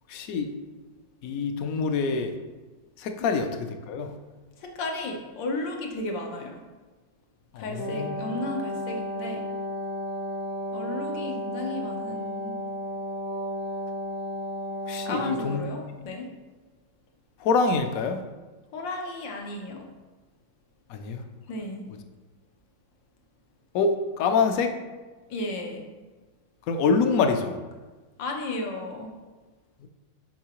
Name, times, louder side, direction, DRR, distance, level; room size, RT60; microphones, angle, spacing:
voice 1, 0.1-0.5 1.2-2.3 3.0-4.1 7.5-8.2 14.9-15.6 17.4-18.2 20.9-21.2 23.7-24.7 26.7-27.5, left 4 dB, 70° left, 6 dB, 0.8 m, -25 dB
voice 2, 4.6-6.5 7.6-9.4 10.7-12.6 15.0-16.3 18.7-19.8 21.5-21.9 25.3-25.8 28.2-29.1, left 2 dB, 85° left, 2 dB, 1.6 m, -34 dB
Wind instrument woodwind instrument, 7.6-15.6, equal, 85° right, 2.3 m, -33 dB
7.2 x 5.6 x 3.0 m, 1.3 s
omnidirectional pair, 1.9 m